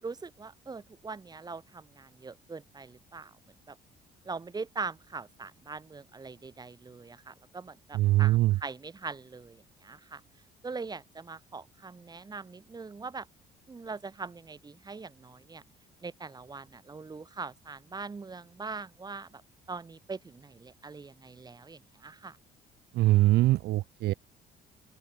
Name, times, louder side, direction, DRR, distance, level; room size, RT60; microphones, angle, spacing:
voice 1, 0.0-3.3 3.7-3.8 4.2-10.2 10.6-13.3 13.7-15.6 16.0-19.4 19.7-22.4, right 4 dB, 25° right, 4.5 m, -42 dB
voice 2, 7.9-8.6 22.9-24.1, right 17 dB, 70° right, 0.7 m, -23 dB
open air
cardioid pair, 110°, 17 cm